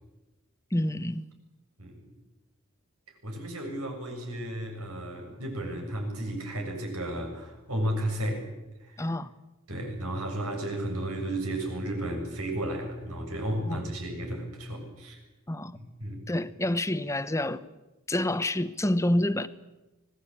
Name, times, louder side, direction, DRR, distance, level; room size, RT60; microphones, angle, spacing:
voice 1, 0.7-1.2 9.0-9.3 13.6-14.0 15.5-15.8 16.3-17.7 18.1-19.5, left 1 dB, 15° left, 0.9 m, -28 dB
voice 2, 1.8-2.1 3.2-8.5 8.9-9.1 9.7-15.2 16.0-16.2, right 1 dB, 90° right, 7.4 m, -33 dB
25.5 x 19.0 x 8.9 m
head